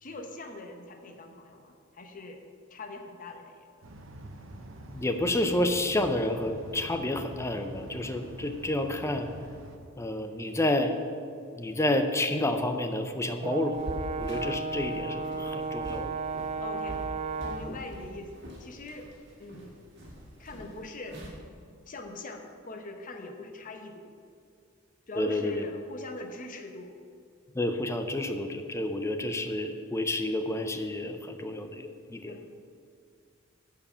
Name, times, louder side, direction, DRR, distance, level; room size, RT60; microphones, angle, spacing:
voice 1, 0.0-2.4 2.7-3.9 16.6-17.1 17.4-19.1 19.4-19.9 20.4-21.2 21.9-24.1 25.1-26.9 32.3-32.5, left 2 dB, 40° left, 4 dB, 0.9 m, -42 dB
sound 1, 3.8-9.8, right 1 dB, 85° right, 1.0 m, -45 dB
voice 2, 4.9-9.3 10.0-11.0 11.6-13.8 14.2-16.1 17.7-17.8 25.2-25.6 27.5-32.3, left 1 dB, 15° left, 7 dB, 0.6 m, -29 dB
Brass instrument, 13.4-17.8, right 4 dB, 30° right, 0.4 m, -34 dB
sound 2, 13.7-21.3, right 1 dB, 60° right, 2.1 m, -44 dB
10.5 x 4.8 x 7.0 m, 2.3 s
head